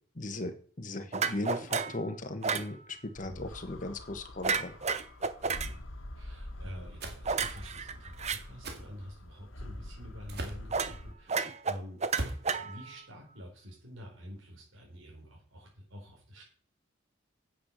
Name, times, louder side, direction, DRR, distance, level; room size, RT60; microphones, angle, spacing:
voice 1, 0.1-4.7, left 1 dB, 40° left, 6 dB, 1.5 m, -37 dB
sound 1, 1.1-2.0 2.4-2.7 4.4-5.7 7.2-8.4 10.7-11.0 11.3-13.0, right 5 dB, 35° right, 0.8 m, -31 dB
sound 2, 3.1-11.1, left 1 dB, 90° left, 1.5 m, -46 dB
voice 2, 6.1-12.0 12.5-16.4, equal, 90° right, -2 dB, 4.4 m, -47 dB
sound 3, 7.0-7.2 8.6-8.8 10.3-10.6 12.1-12.5, right 1 dB, 55° right, 2.3 m, -37 dB
9.6 x 7.7 x 6.6 m, 0.43 s
head